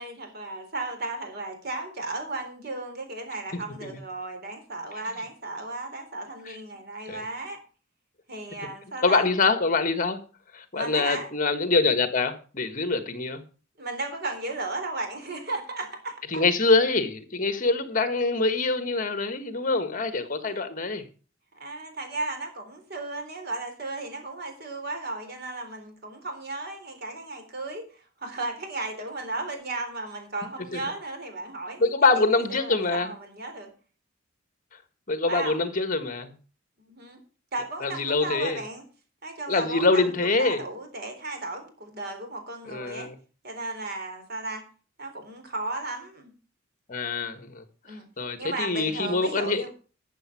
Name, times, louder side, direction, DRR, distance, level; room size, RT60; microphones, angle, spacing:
voice 1, 0.0-7.6 8.3-9.2 10.7-11.3 13.8-16.4 20.5-20.6 21.6-31.8 32.1-33.7 35.3-35.6 36.8-37.2 37.5-38.8 39.2-43.1 43.4-44.6 45.0-46.3 47.8-48.1 48.4-49.7, right 2 dB, 55° right, 3.9 m, -35 dB
voice 2, 9.0-10.2 10.5-13.4 16.3-21.0 30.7-30.8 31.8-33.1 35.1-36.3 37.8-38.6 39.5-40.6 42.7-43.2 46.9-49.6, left 3 dB, 45° left, 1.5 m, -25 dB
13.0 x 7.1 x 6.1 m
head